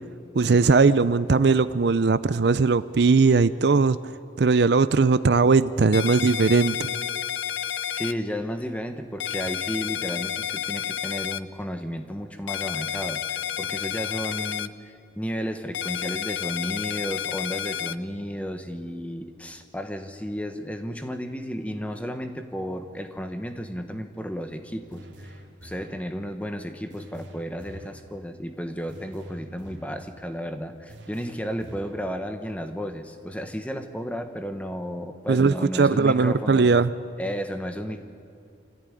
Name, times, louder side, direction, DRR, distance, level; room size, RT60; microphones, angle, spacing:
voice 1, 0.3-4.0 4.4-6.9 35.3-36.9, right 4 dB, 60° right, 15 dB, 0.5 m, -19 dB
sound 1, 5.9-8.1 9.2-11.4 12.5-14.7 15.7-17.9, left 9 dB, 80° left, 0.6 m, -30 dB
voice 2, 7.6-36.7 37.2-38.0, equal, 5° left, 7 dB, 1.1 m, -33 dB
sound 2, 24.9-26.1 26.9-28.1 28.9-30.1 30.9-32.1, equal, 75° right, 2.5 m, -46 dB
25.0 x 14.5 x 9.9 m, 2.4 s
head